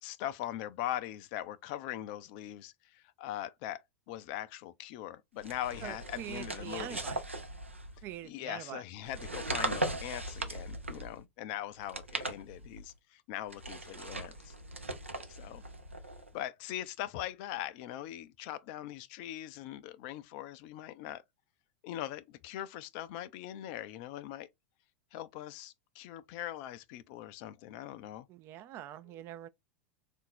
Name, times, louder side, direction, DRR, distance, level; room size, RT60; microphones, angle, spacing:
voice 1, 0.0-7.0 8.2-14.5 15.4-15.6 16.3-21.2 21.8-24.5 25.1-28.3, left 13 dB, 50° left, 0.4 m, -41 dB
sound 1, 5.4-8.2 9.0-11.2 11.8-12.9 13.5-16.3, right 2 dB, 90° right, 0.7 m, -39 dB
voice 2, 5.8-7.2 8.0-8.8 15.5-16.0 28.3-29.5, right 12 dB, 35° right, 0.4 m, -44 dB
3.7 x 2.6 x 4.3 m
figure-of-eight pair, 90°, 7 cm